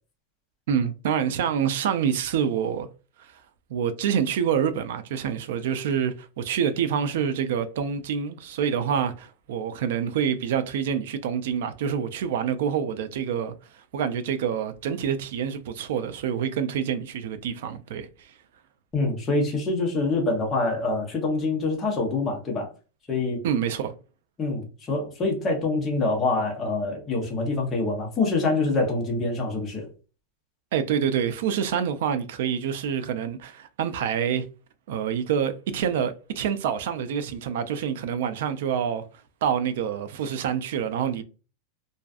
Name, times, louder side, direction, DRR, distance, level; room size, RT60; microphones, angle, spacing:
voice 1, 0.7-2.9 3.2-3.3 3.7-13.5 13.9-18.3 23.4-23.9 30.7-34.5 34.9-39.1 39.4-41.2, right 8 dB, 65° right, 0.3 m, -27 dB
voice 2, 18.9-22.7 23.1-23.4 24.4-29.9, left 3 dB, 15° left, 0.7 m, -25 dB
2.5 x 2.3 x 2.3 m
supercardioid pair, 165°, 0 cm